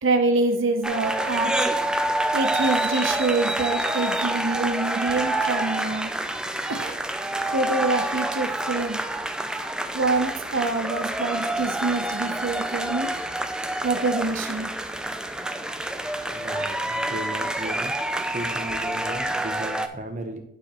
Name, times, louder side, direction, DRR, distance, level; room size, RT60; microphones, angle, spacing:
voice 1, 0.0-1.5 2.3-6.1 6.7-7.0 7.5-9.0 9.9-13.1 13.8-14.7, right 3 dB, 75° right, 5 dB, 0.8 m, -26 dB
sound 1, 0.8-19.9, right 1 dB, 5° right, 0.4 m, -27 dB
voice 2, 16.3-20.4, right 1 dB, 40° right, 4 dB, 0.9 m, -36 dB
11.5 x 4.9 x 3.0 m, 0.79 s
head